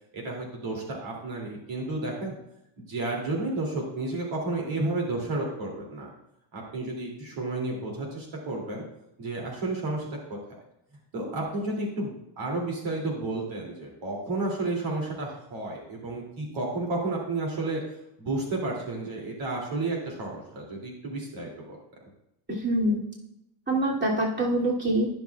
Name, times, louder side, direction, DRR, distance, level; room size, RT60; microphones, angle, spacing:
voice 1, 0.1-2.4 2.8-6.1 6.5-8.8 9.2-10.4 11.1-17.8 18.2-21.8, right 2 dB, 70° right, -2 dB, 2.8 m, -31 dB
voice 2, 22.6-23.0 23.7-25.1, right 1 dB, 20° right, -5 dB, 2.6 m, -25 dB
15.5 x 6.1 x 2.4 m, 0.83 s
cardioid pair, 85°, 48 cm